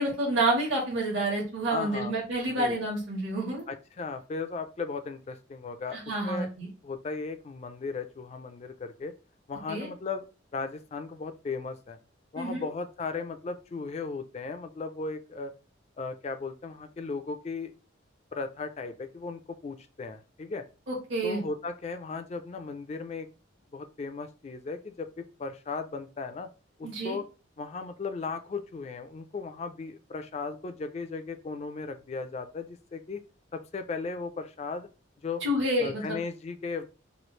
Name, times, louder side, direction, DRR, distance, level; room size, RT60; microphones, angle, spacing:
voice 1, 0.0-3.6 5.9-6.7 9.7-9.9 12.4-12.6 20.9-21.4 26.8-27.2 35.4-36.0, right 1 dB, 70° right, -2 dB, 1.2 m, -29 dB
voice 2, 1.7-2.2 2.6-2.8 3.7-6.5 6.8-9.1 9.5-10.3 10.5-12.0 12.3-15.5 16.0-17.7 18.3-20.7 21.2-23.3 23.7-26.5 26.8-27.2 27.6-33.2 33.5-34.9 35.2-35.4 35.8-36.9, left 4 dB, 35° left, 9 dB, 0.3 m, -36 dB
3.1 x 2.3 x 3.0 m, 0.33 s
head